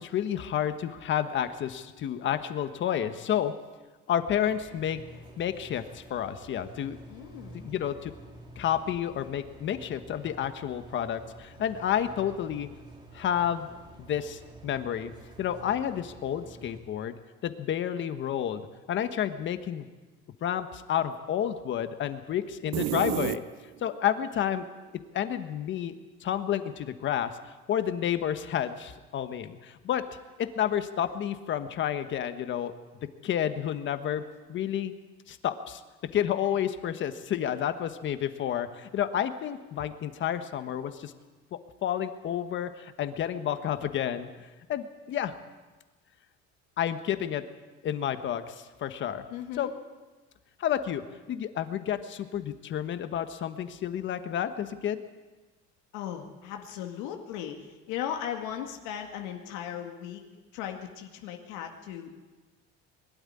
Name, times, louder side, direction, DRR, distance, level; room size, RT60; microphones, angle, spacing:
voice 1, 0.0-3.5 4.1-5.0 5.4-7.0 7.5-8.1 8.6-12.7 13.1-13.7 14.0-15.1 15.4-17.1 17.4-19.9 20.4-23.4 23.8-24.7 25.1-32.7 33.2-34.2 34.5-34.9 35.3-35.8 36.1-41.1 41.5-44.3 44.7-45.3 46.8-47.4 47.8-49.2 49.6-49.7 50.6-55.0, left 10 dB, 40° left, 10 dB, 1.3 m, -30 dB
sound 1, 4.5-16.8, right 2 dB, 15° right, 2.6 m, -50 dB
voice 2, 7.1-7.7 49.3-49.7 55.9-60.2 60.5-62.2, left 9 dB, 80° left, 3 dB, 2.1 m, -37 dB
sound 2, 22.7-24.0, right 15 dB, 60° right, 0.6 m, -30 dB
22.0 x 12.5 x 9.9 m, 1.3 s
cardioid pair, 155°, 30 cm